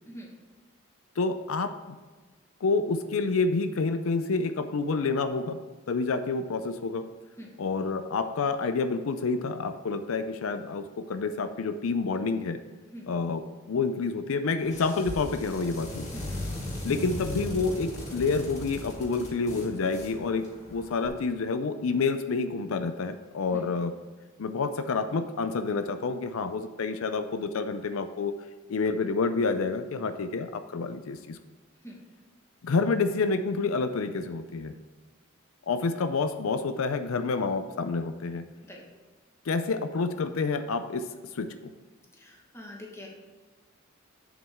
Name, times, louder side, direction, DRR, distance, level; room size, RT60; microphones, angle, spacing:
voice 1, 1.2-2.0 2.6-5.6 5.9-7.0 7.6-12.6 13.1-16.1 16.8-23.9 24.4-28.3 28.7-31.4 32.6-34.8 35.7-38.4 39.5-41.1 41.3-41.7, left 4 dB, 85° left, 10 dB, 0.5 m, -28 dB
sound 1, 14.6-21.1, left 1 dB, 35° left, 2.1 m, -38 dB
voice 2, 42.1-43.1, equal, 15° left, -2 dB, 1.5 m, -44 dB
8.2 x 7.2 x 3.6 m, 1.4 s
head